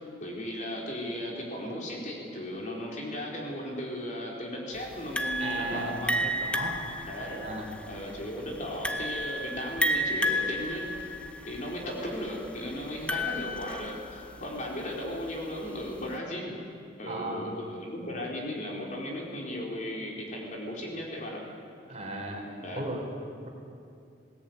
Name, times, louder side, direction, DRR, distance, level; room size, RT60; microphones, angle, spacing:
voice 1, 0.2-6.1 7.0-7.5 7.9-11.2 11.4-16.5 17.0-21.4 22.6-22.9, left 1 dB, 45° left, -2 dB, 4.3 m, -36 dB
sound 1, 5.2-14.4, equal, 5° left, 0.9 m, -32 dB
voice 2, 5.4-6.8 7.2-7.7 17.1-17.5 21.9-22.4 22.7-23.0, right 2 dB, 35° right, 1 dB, 3.7 m, -36 dB
20.5 x 18.0 x 9.4 m, 2.4 s
head